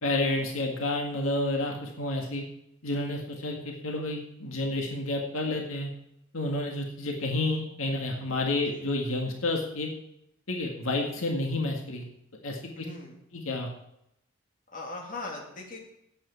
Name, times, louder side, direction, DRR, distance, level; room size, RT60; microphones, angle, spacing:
voice 1, 0.0-2.4 2.8-5.9 6.3-9.9 10.5-12.0 12.4-12.9 13.3-13.7, left 2 dB, 80° left, 1 dB, 1.9 m, -30 dB
voice 2, 12.7-13.2 14.7-15.8, left 2 dB, 40° left, -1 dB, 2.8 m, -39 dB
8.9 x 8.7 x 8.3 m, 0.79 s
head